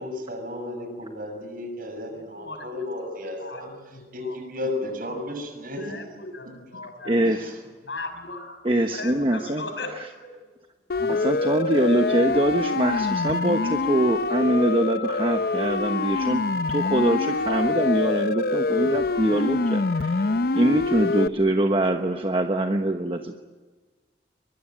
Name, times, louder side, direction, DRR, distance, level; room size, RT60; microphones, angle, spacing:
voice 1, 0.0-3.7 4.1-5.9 7.2-7.6, left 1 dB, 50° right, 5 dB, 6.7 m, -33 dB
voice 2, 2.3-2.7 3.4-4.4 5.7-7.2 7.8-10.6, left 3 dB, 85° left, 7 dB, 6.1 m, -38 dB
voice 3, 7.0-7.5 8.6-9.7 11.0-16.4 16.7-20.3 20.5-23.3, right 1 dB, 30° right, 4 dB, 1.2 m, -23 dB
Siren, 10.9-21.3, left 3 dB, 60° left, 0.7 m, -25 dB
23.0 x 22.0 x 9.0 m, 1.3 s
head